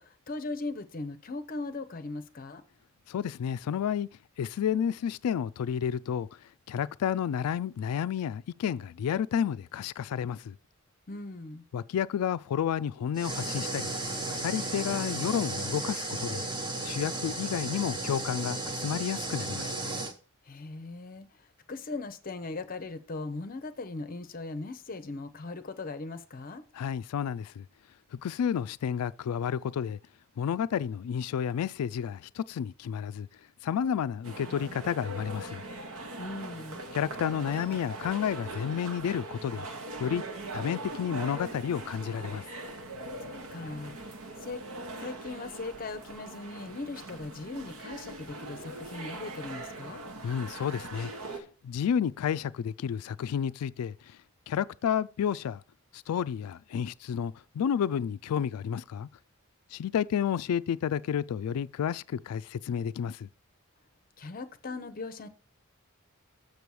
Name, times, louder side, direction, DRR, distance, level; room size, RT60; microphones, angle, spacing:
voice 1, 0.0-2.6 11.1-11.6 20.4-26.6 36.2-36.8 43.2-44.0 44.4-44.6 45.0-50.0 64.2-65.3, left 3 dB, 40° left, 0.6 m, -39 dB
voice 2, 3.1-4.1 4.4-6.3 6.7-10.6 11.7-13.9 14.3-16.4 16.8-19.7 26.7-27.6 28.1-30.0 30.4-33.3 33.6-35.6 36.9-39.7 40.0-40.2 40.5-42.4 50.2-54.2 54.5-55.6 55.9-59.1 59.7-63.3, left 8 dB, 85° left, 0.3 m, -31 dB
sound 1, 13.2-20.1, right 2 dB, 20° right, 0.9 m, -34 dB
sound 2, 34.2-51.4, right 2 dB, 70° right, 1.2 m, -41 dB
6.9 x 6.6 x 4.7 m
head